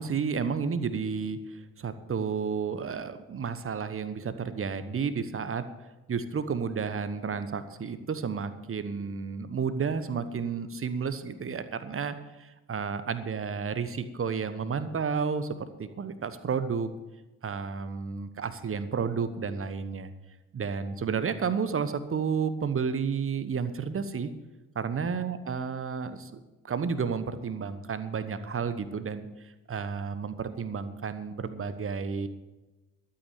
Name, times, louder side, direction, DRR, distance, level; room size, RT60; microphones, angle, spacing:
voice 1, 0.0-5.6 6.1-16.9 17.4-20.1 20.5-24.3 24.7-26.4 26.6-29.3 29.7-32.3, right 6 dB, 30° right, 11 dB, 1.2 m, -31 dB
12.5 x 8.7 x 7.0 m, 1.1 s
figure-of-eight pair, 45°, 43 cm